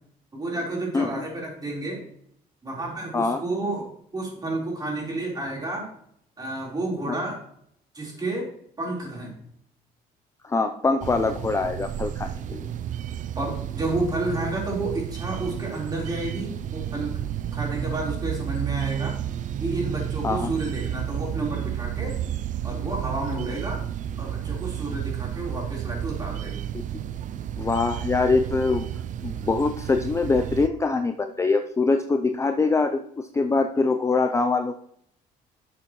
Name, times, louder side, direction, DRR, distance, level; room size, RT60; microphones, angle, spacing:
voice 1, 0.3-2.0 2.6-3.9 4.1-5.9 6.4-7.4 7.9-8.5 8.8-9.3 13.3-17.1 17.5-19.1 19.6-22.2 22.6-23.8 24.2-26.5, right 2 dB, 25° right, -2 dB, 4.0 m, -30 dB
voice 2, 10.4-12.7 20.2-20.5 26.7-26.8 27.6-28.9 29.2-34.8, left 3 dB, 15° left, 7 dB, 0.5 m, -24 dB
sound 1, 11.0-30.7, right 10 dB, 50° right, 0.4 m, -31 dB
11.0 x 7.1 x 3.1 m, 0.69 s
cardioid pair, 110°, 17 cm